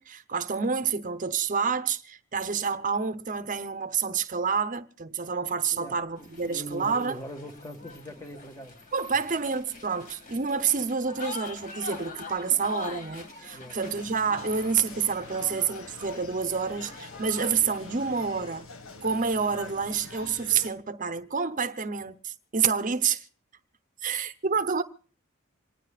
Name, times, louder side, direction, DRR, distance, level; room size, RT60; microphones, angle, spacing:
voice 1, 0.0-7.2 8.9-18.7 19.0-23.3 24.0-24.8, right 6 dB, 40° right, 0.9 m, -28 dB
voice 2, 5.7-8.8 13.5-13.9, equal, 15° left, 1.7 m, -41 dB
sound 1, 6.2-18.0, left 3 dB, 40° left, 2.1 m, -44 dB
sound 2, 13.8-20.7, left 3 dB, 80° left, 1.7 m, -45 dB
26.5 x 19.0 x 2.4 m
head